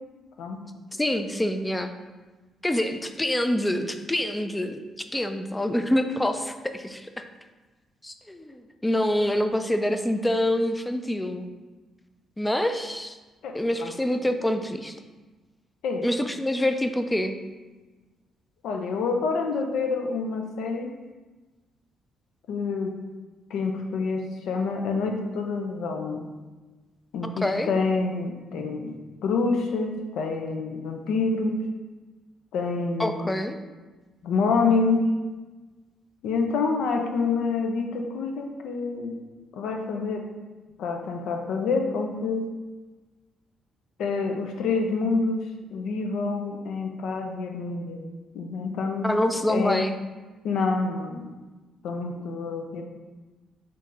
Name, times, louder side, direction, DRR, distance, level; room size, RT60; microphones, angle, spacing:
voice 1, 0.9-1.9 2.6-4.8 5.1-7.3 8.0-11.5 12.4-13.2 13.5-15.0 16.0-17.4 27.2-27.7 33.0-33.6 49.0-49.9, left 1 dB, 10° left, 8 dB, 0.3 m, -26 dB
voice 2, 13.4-13.9 15.8-16.1 18.6-20.9 22.5-23.0 23.5-26.3 27.1-28.9 29.2-31.6 32.5-33.3 34.2-35.1 36.2-39.2 39.5-40.3 40.8-42.5 44.0-48.0 48.3-49.1 49.5-49.8 50.4-51.3 51.8-52.8, left 4 dB, 80° left, 3 dB, 0.4 m, -27 dB
3.6 x 2.5 x 4.2 m, 1.2 s
cardioid pair, 90°, 0 cm